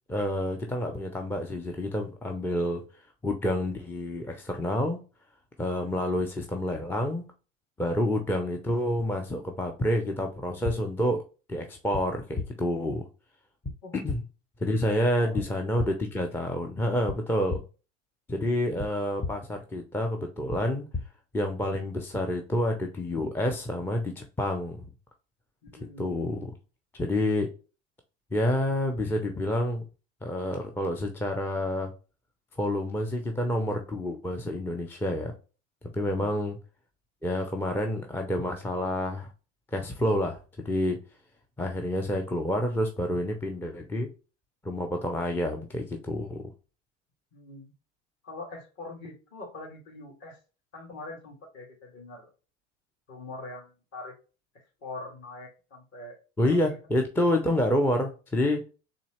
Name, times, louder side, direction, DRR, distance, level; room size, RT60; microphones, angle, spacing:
voice 1, 0.1-2.8 3.2-5.0 5.6-7.2 7.8-11.2 11.5-13.1 13.9-14.2 14.6-17.6 18.3-20.9 21.3-24.8 26.0-26.5 27.0-27.5 28.3-29.8 30.2-31.9 32.6-35.3 35.9-36.6 37.2-39.3 39.7-40.4 40.6-41.0 41.6-44.1 44.6-46.4 56.4-58.6, left 1 dB, 5° left, 3 dB, 0.4 m, -28 dB
sound 1, 10.6-10.8 11.9-12.0 12.4-12.5 13.6-13.7 14.1-14.2 15.4-15.5 15.8-15.9 17.1-17.2 17.5-17.6 18.8-18.9 19.2-19.3 20.5-20.6 20.9-21.0, left 3 dB, 20° left, 1.0 m, -32 dB
voice 2, 25.6-26.1 36.0-36.3 47.3-47.7 48.2-50.4 50.7-52.3 53.1-54.2 54.5-56.2 56.5-56.6, left 2 dB, 45° left, 0 dB, 1.8 m, -43 dB
3.9 x 2.8 x 2.9 m, 0.33 s
hypercardioid pair, 85°, 38 cm